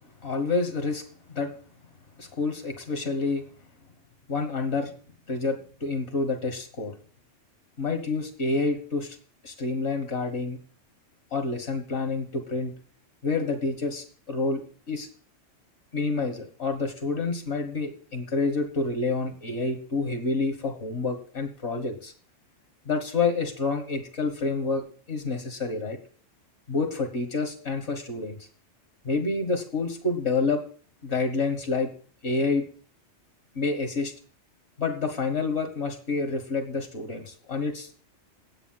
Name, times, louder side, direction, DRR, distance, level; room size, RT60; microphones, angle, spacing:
voice 1, 0.2-1.0 1.3-1.5 2.2-3.4 4.3-4.9 5.3-6.9 7.8-9.2 9.4-10.6 11.3-12.7 13.2-14.6 14.9-15.1 15.9-22.1 22.9-26.0 26.7-28.4 29.0-30.6 31.0-31.9 32.2-32.6 33.6-34.1 34.8-37.9, left 3 dB, 60° left, 4 dB, 1.8 m, -28 dB
9.2 x 8.3 x 7.5 m, 0.43 s
omnidirectional pair, 1.3 m